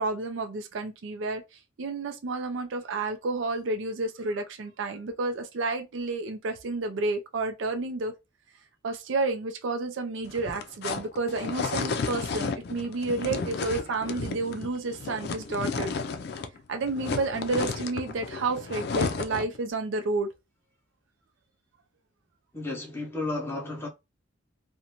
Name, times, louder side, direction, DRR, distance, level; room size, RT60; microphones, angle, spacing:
voice 1, 0.0-1.4 1.8-8.1 8.8-15.9 16.7-20.3, right 3 dB, 75° right, 0.4 m, -30 dB
sound 1, 10.2-16.6 16.8-19.6, left 4 dB, 55° left, 0.4 m, -32 dB
voice 2, 22.5-23.9, left 2 dB, 15° left, 0.7 m, -33 dB
2.5 x 2.1 x 2.8 m
head